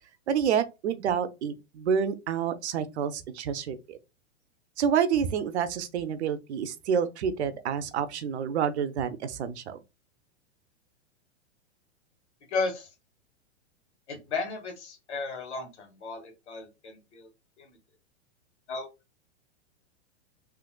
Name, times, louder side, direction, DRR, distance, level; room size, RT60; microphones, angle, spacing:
voice 1, 0.3-4.0 4.8-9.8, right 7 dB, 70° right, 0.7 m, -28 dB
voice 2, 12.5-12.9 14.1-17.3 17.6-17.8 18.7-18.9, left 4 dB, 80° left, 1.6 m, -34 dB
3.8 x 2.8 x 2.2 m
hypercardioid pair, 115°, 34 cm